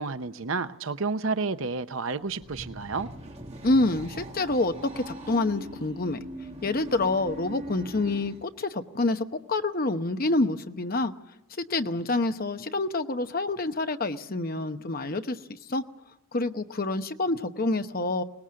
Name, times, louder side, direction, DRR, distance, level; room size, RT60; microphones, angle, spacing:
voice 1, 0.0-3.1, right 4 dB, 70° right, 11 dB, 0.8 m, -30 dB
sound 1, 2.2-8.4, right 1 dB, 30° right, 2.0 m, -41 dB
voice 2, 3.6-6.3 6.6-11.1 11.6-15.4 15.7-15.8 16.3-18.2, left 2 dB, 45° left, 8 dB, 0.9 m, -27 dB
23.5 x 19.5 x 7.6 m, 0.90 s
head